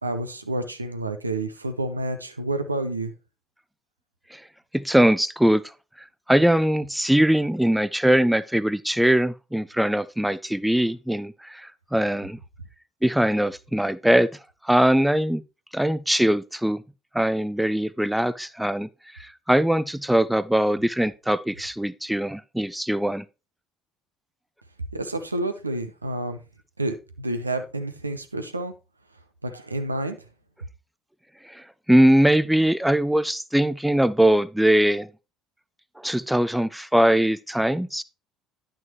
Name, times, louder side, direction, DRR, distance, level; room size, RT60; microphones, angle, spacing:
voice 1, 0.0-3.1 24.9-26.4 26.8-28.7 29.4-30.2, right 2 dB, 85° right, 0.7 m, -29 dB
voice 2, 4.7-5.6 6.3-12.4 13.0-14.3 14.6-15.4 15.7-16.8 17.1-18.9 19.1-23.2 31.4-35.1 36.0-38.0, right 1 dB, 5° right, 0.4 m, -21 dB
10.5 x 6.0 x 3.0 m
figure-of-eight pair, 55°, 0 cm